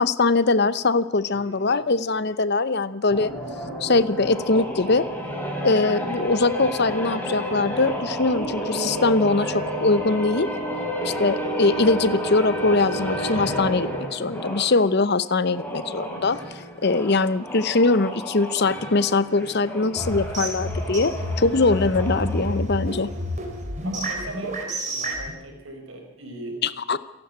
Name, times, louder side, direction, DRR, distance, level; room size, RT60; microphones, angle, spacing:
voice 1, 0.0-3.3 3.8-5.0 5.6-10.5 11.0-16.4 16.8-23.1 26.6-27.0, left 3 dB, 50° left, 16 dB, 0.8 m, -22 dB
voice 2, 1.2-1.8 4.1-4.3 22.9-23.4 23.8-26.6, right 2 dB, 65° right, 4 dB, 4.6 m, -39 dB
sound 1, 3.1-14.8 15.4-22.6, equal, 10° left, 4.2 m, -31 dB
sound 2, 20.0-25.3, equal, 35° right, 3.6 m, -29 dB
28.0 x 11.5 x 8.0 m, 0.96 s
head